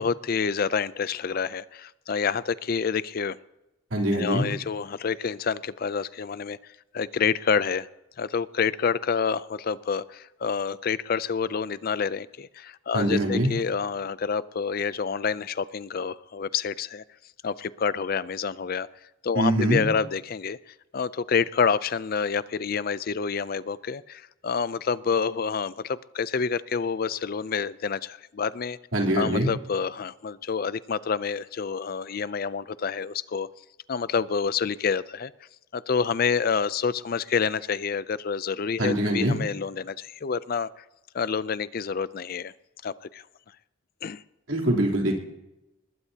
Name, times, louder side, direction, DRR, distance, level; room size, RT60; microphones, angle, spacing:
voice 1, 0.0-3.4 4.1-6.6 6.9-7.9 8.2-17.0 17.4-18.9 19.2-28.8 29.2-33.5 33.9-35.3 35.7-40.8 41.1-42.5 42.8-43.2 44.0-44.2, left 6 dB, 45° left, 17 dB, 0.4 m, -28 dB
voice 2, 3.9-4.5 12.9-13.5 19.3-19.8 28.9-29.5 38.8-39.4 44.5-45.2, right 1 dB, 70° right, 0 dB, 3.4 m, -23 dB
22.0 x 20.5 x 2.9 m, 0.96 s
head